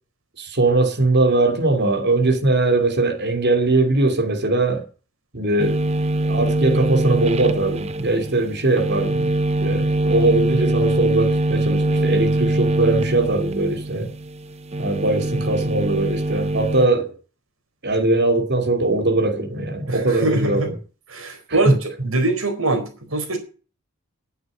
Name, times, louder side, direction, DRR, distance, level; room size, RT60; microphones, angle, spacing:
voice 1, 0.4-4.8 5.3-5.8 6.2-9.3 9.6-14.1 14.8-17.1 17.8-20.7 21.5-21.8, right 2 dB, 55° right, 2.8 m, -20 dB
sound 1, 5.6-16.9, right 1 dB, 30° right, 0.7 m, -23 dB
voice 2, 19.9-20.7 21.1-23.4, right 2 dB, 85° right, 4.4 m, -23 dB
9.8 x 7.9 x 9.6 m
head